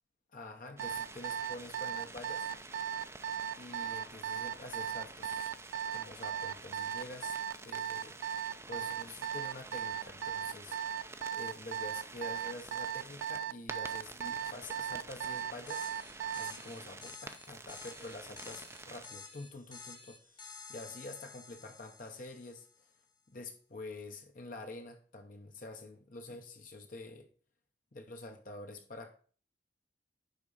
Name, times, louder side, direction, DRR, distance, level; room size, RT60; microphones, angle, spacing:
voice 1, 0.3-2.5 3.5-5.5 5.9-7.3 7.6-8.2 8.6-10.8 11.3-15.9 16.4-20.4 20.7-22.9 23.3-27.3 27.9-29.1, left 2 dB, 45° left, 4 dB, 0.9 m, -47 dB
sound 1, 0.8-19.1, right 3 dB, 15° right, 0.5 m, -50 dB
Alarm, 0.8-16.6, right 9 dB, 85° right, 0.3 m, -37 dB
sound 2, 15.7-22.8, left 5 dB, 25° left, 1.1 m, -52 dB
10.5 x 3.8 x 5.4 m, 0.42 s
head